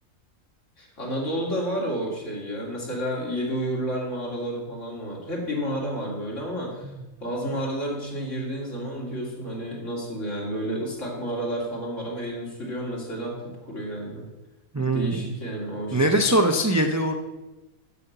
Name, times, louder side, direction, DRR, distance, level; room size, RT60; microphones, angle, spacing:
voice 1, 0.8-6.9 7.2-14.2 14.8-16.2, equal, 60° left, -2 dB, 2.9 m, -31 dB
voice 2, 14.7-15.3 15.9-17.2, right 1 dB, 20° right, 4 dB, 0.5 m, -22 dB
8.4 x 5.8 x 8.0 m, 1.1 s
omnidirectional pair, 1.4 m